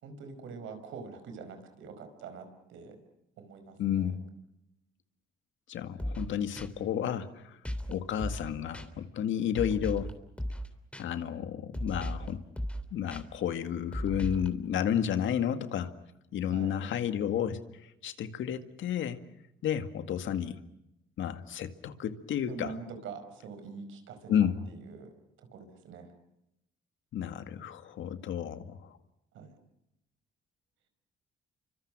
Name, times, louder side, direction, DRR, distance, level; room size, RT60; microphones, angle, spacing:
voice 1, 0.0-3.0 3.4-4.1 16.5-16.8 22.5-25.1 25.4-26.1 29.3-29.5, right 5 dB, 80° right, 8 dB, 5.2 m, -45 dB
voice 2, 3.8-4.2 5.7-7.6 7.9-10.1 11.0-12.4 12.9-15.9 16.3-17.6 18.0-19.2 19.6-20.6 21.2-22.7 24.3-24.6 27.1-28.9, left 9 dB, 75° left, 9 dB, 2.0 m, -31 dB
sound 1, 6.0-6.3 6.6-6.7 7.7-7.9 8.2-8.5 8.7-8.9 9.6-10.1 10.4-10.7 10.9-11.0 11.7-12.3 12.6-12.8 13.1-13.2 13.9-14.5, equal, 5° left, 3.3 m, -35 dB
29.5 x 25.0 x 6.2 m, 0.86 s
cardioid pair, 90°, 20 cm